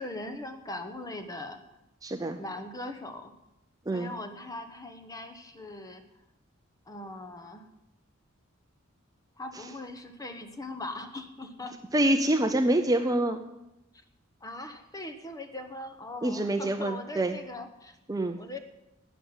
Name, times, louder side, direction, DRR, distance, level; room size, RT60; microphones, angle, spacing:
voice 1, 0.0-1.6 2.4-3.3 3.9-6.0 6.9-7.7 9.4-11.8 14.4-18.0 18.4-18.6, left 2 dB, 15° left, 7 dB, 1.0 m, -40 dB
voice 2, 2.0-2.4 3.9-4.1 11.9-13.4 16.2-17.4 18.1-18.4, right 1 dB, 15° right, 7 dB, 0.6 m, -26 dB
12.0 x 9.4 x 7.2 m, 0.91 s
head